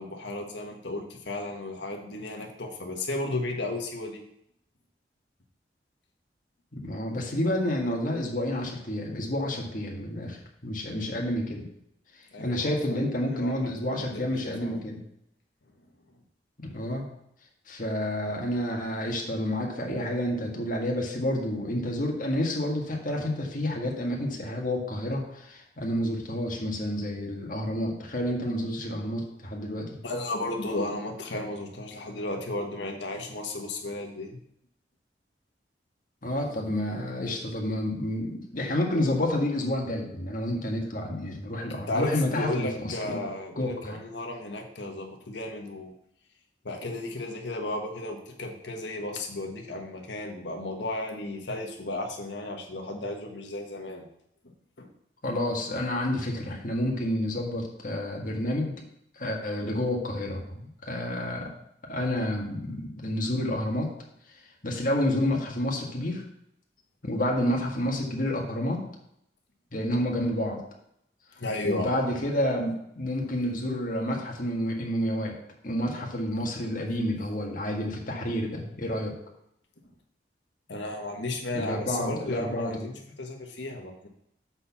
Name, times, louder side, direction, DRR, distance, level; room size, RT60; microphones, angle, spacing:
voice 1, 0.0-4.2 12.3-13.0 13.3-13.7 14.0-14.8 30.0-34.4 41.9-45.9 46.6-54.0 54.8-54.9 71.4-71.9 80.7-84.1, left 2 dB, 85° left, 2 dB, 1.5 m, -34 dB
voice 2, 6.7-10.4 10.6-11.7 12.4-15.0 16.6-17.1 17.7-30.0 36.2-43.3 43.6-44.0 55.2-58.7 59.2-61.5 61.9-63.9 64.6-66.2 67.0-68.8 69.7-70.6 71.6-75.4 75.6-79.1 81.5-82.9, left 1 dB, 50° left, 0 dB, 1.7 m, -29 dB
7.7 x 4.3 x 5.9 m, 0.76 s
head